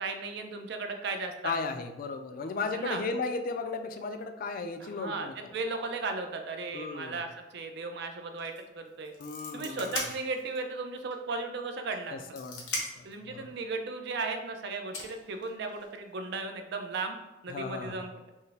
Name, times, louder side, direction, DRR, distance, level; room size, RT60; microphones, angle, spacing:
voice 1, 0.0-1.7 2.7-3.0 4.8-9.1 9.5-12.4 13.0-17.2 17.4-18.3, right 3 dB, 65° right, 5 dB, 0.4 m, -36 dB
voice 2, 1.4-5.3 6.7-7.2 9.2-10.0 12.1-13.5 17.5-18.1, left 4 dB, 50° left, 7 dB, 0.3 m, -35 dB
sound 1, 8.4-8.6 8.9-10.7 11.1-11.2 11.9-13.1 14.3-14.4 14.9-15.9, left 2 dB, 85° left, 0.9 m, -38 dB
4.4 x 2.1 x 3.3 m, 1.0 s
head